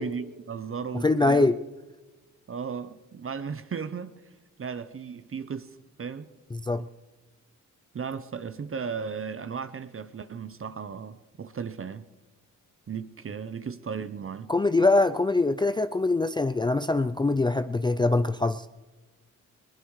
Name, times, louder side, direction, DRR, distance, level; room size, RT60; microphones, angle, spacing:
voice 1, 0.0-1.5 2.5-4.2 4.6-6.3 7.9-12.1 12.9-14.5, right 6 dB, 40° right, 0.7 m, -35 dB
voice 2, 1.0-1.6 6.5-6.8 14.5-18.7, left 2 dB, 15° left, 0.4 m, -23 dB
20.5 x 19.5 x 3.2 m
cardioid pair, 60°, 33 cm